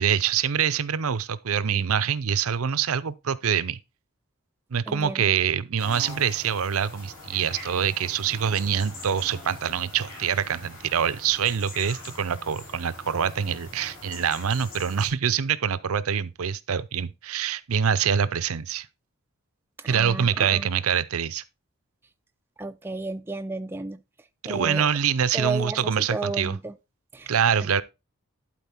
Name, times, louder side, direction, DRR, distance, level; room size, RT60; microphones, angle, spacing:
voice 1, 0.0-3.8 4.7-18.9 19.9-21.4 24.4-26.6 27.3-27.8, right 7 dB, 80° right, 0.6 m, -25 dB
voice 2, 4.9-5.3 19.8-20.7 22.6-24.0 24.4-24.9 25.3-26.7 27.1-27.3, right 3 dB, 10° right, 0.4 m, -33 dB
sound 1, 5.8-15.1, left 2 dB, 40° left, 6.5 m, -43 dB
11.5 x 4.3 x 4.3 m
head